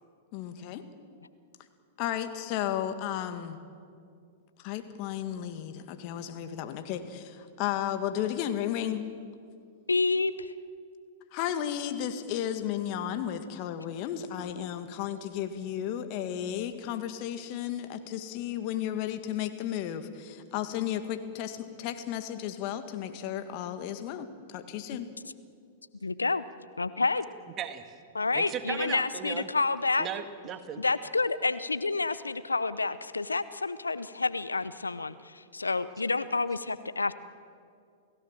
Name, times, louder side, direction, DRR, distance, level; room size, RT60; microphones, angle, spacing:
voice 1, 0.3-0.8 2.0-3.6 4.6-9.0 11.3-25.1, left 10 dB, 45° left, 8 dB, 1.9 m, -34 dB
voice 2, 9.9-10.5 26.0-26.4 26.8-27.3 28.1-30.1 30.8-37.1, left 3 dB, 90° left, 15 dB, 0.7 m, -29 dB
voice 3, 27.6-27.9 28.3-29.5 30.0-30.8, right 8 dB, 30° right, 8 dB, 1.9 m, -36 dB
29.5 x 16.5 x 7.4 m, 2.3 s
figure-of-eight pair, 100°, 0 cm